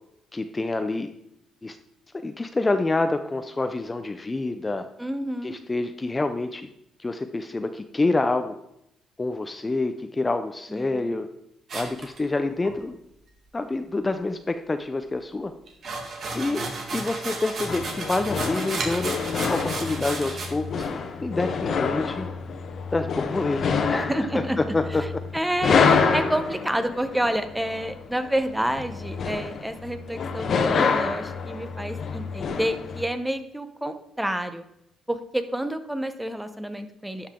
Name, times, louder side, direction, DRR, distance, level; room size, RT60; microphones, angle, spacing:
voice 1, 0.3-1.1 1.6-1.8 2.2-4.9 5.4-6.7 7.0-8.6 9.2-11.3 11.7-13.0 13.5-15.5 16.3-19.1 19.5-20.9 21.2-22.3 22.9-25.0, left 2 dB, 20° left, 8 dB, 0.5 m, -27 dB
voice 2, 5.0-5.6 10.7-11.1 16.3-16.7 24.0-24.6 25.3-34.6 35.1-37.3, right 1 dB, 5° right, 10 dB, 0.8 m, -29 dB
sound 1, 11.7-12.7 15.7-20.5 20.8-20.9 21.4-21.5, right 3 dB, 55° right, 1.8 m, -33 dB
sound 2, 17.7-33.0, left 5 dB, 55° left, 1.0 m, -27 dB
11.5 x 5.6 x 3.7 m, 0.80 s
cardioid pair, 90°, 0 cm